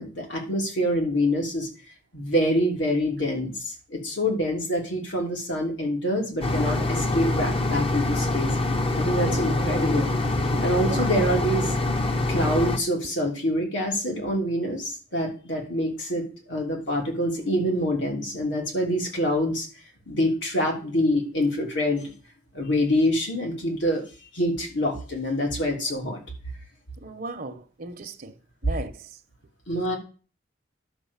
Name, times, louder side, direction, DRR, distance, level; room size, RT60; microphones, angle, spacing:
voice 1, 0.0-1.7 2.1-8.5 8.9-10.1 10.6-11.7 12.3-19.7 20.1-22.1 22.5-24.0 24.3-26.2 29.7-30.0, equal, 80° left, 3.1 m, -26 dB
sound 1, 6.4-12.8, left 2 dB, 30° left, 0.8 m, -25 dB
voice 2, 9.1-10.0 10.4-11.2 27.0-28.3 28.6-28.9, right 2 dB, 50° right, 0.8 m, -36 dB
11.0 x 5.0 x 7.2 m
head